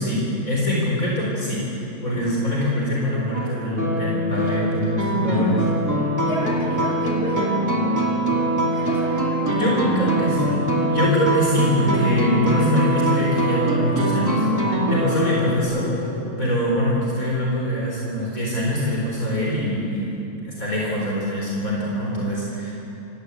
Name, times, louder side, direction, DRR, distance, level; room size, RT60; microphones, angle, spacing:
voice 1, 0.0-5.6 9.5-15.9 16.4-20.1 20.4-22.7, equal, 60° left, -4 dB, 4.5 m, -23 dB
sound 1, 2.0-16.5, left 1 dB, 60° right, 7.9 m, -37 dB
sound 2, 3.3-15.6, right 1 dB, 10° right, 2.5 m, -23 dB
voice 2, 5.3-5.6 6.3-7.6 8.6-9.8, equal, 75° left, -2 dB, 6.3 m, -31 dB
26.5 x 17.5 x 8.3 m, 3.0 s
omnidirectional pair, 1.7 m